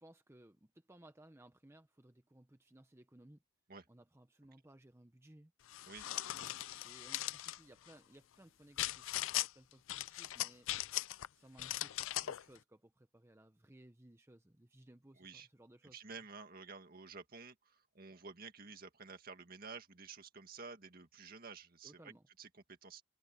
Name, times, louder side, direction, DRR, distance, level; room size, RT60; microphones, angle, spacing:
voice 1, 0.0-3.4 3.9-5.5 6.0-10.7 11.3-16.2 21.8-22.3, right 1 dB, 15° right, 0.8 m, -61 dB
sound 1, 5.7-7.6 8.8-9.5 9.9-11.3 11.6-12.4, left 14 dB, 75° left, 0.4 m, -39 dB
voice 2, 15.2-15.5 15.9-22.1 22.4-23.0, right 4 dB, 45° right, 2.0 m, -51 dB
head